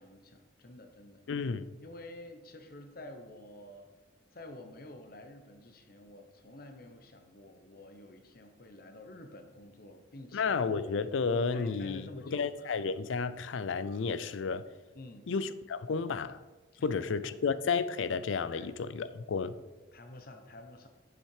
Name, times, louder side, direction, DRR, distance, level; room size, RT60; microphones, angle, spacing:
voice 1, 0.0-1.2 1.8-3.9 4.3-10.7 11.5-12.7 14.9-15.3 16.7-16.9 18.5-18.7 19.9-20.9, left 1 dB, 50° left, 0.9 m, -50 dB
voice 2, 1.3-1.7 10.3-14.6 15.3-16.4 16.8-19.6, left 5 dB, 80° left, 0.4 m, -32 dB
7.2 x 6.5 x 4.9 m
head